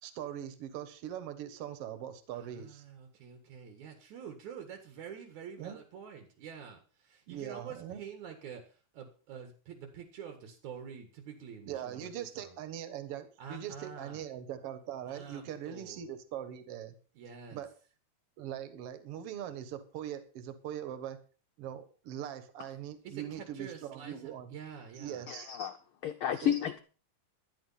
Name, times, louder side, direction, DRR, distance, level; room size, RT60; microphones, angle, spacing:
voice 1, 0.0-2.8 5.6-5.8 7.3-8.0 11.7-16.9 17.5-17.7 18.4-21.2 21.6-24.5 25.0-25.5 26.4-26.5, right 10 dB, 60° right, 2.2 m, -41 dB
voice 2, 2.3-12.6 13.4-14.2 15.1-16.1 17.1-17.6 23.0-25.3, right 7 dB, 85° right, 3.1 m, -47 dB
voice 3, 25.3-25.7 26.0-26.8, left 9 dB, 75° left, 1.2 m, -31 dB
12.5 x 10.0 x 5.6 m
omnidirectional pair, 3.3 m